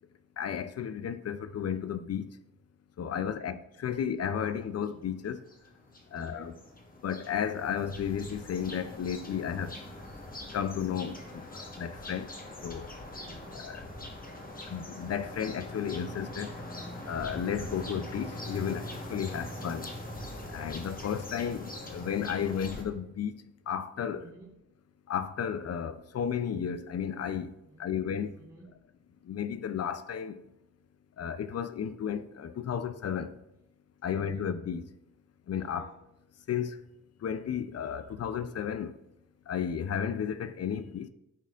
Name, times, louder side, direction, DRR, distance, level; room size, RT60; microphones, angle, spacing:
voice 1, 0.4-2.4 3.0-5.4 6.1-6.5 7.0-9.8 10.5-12.3 12.6-12.9 14.6-16.6 17.1-19.9 20.5-24.2 25.1-28.4 29.2-30.4 31.2-33.4 34.0-34.8 35.5-35.9 36.5-36.8 37.2-39.0 39.5-41.1, left 8 dB, 55° left, 0.5 m, -33 dB
voice 2, 3.1-3.6 6.1-6.7 13.2-13.7 19.2-19.6 24.1-24.6 27.6-27.9 28.3-28.8 34.1-34.5 35.6-36.0, right 2 dB, 15° right, 1.5 m, -54 dB
sound 1, 4.9-5.0 5.3-22.8, left 1 dB, 30° left, 1.3 m, -42 dB
12.5 x 4.3 x 2.5 m
cardioid pair, 85°, 30 cm